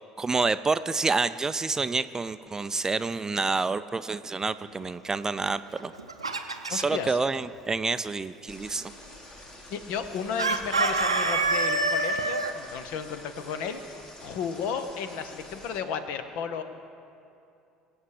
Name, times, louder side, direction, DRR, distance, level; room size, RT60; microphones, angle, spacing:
voice 1, 0.2-5.9 6.7-8.9, right 4 dB, 20° right, 13 dB, 0.4 m, -28 dB
Chicken rooster, 5.8-7.0 10.4-12.5, right 3 dB, 90° right, 0.6 m, -26 dB
voice 2, 6.7-7.2 9.7-13.8 14.2-16.6, left 6 dB, 60° left, 10 dB, 0.9 m, -33 dB
sound 1, 8.5-15.8, left 1 dB, 25° left, 1.8 m, -48 dB
23.0 x 8.2 x 4.9 m, 2.6 s
figure-of-eight pair, 60°, 3 cm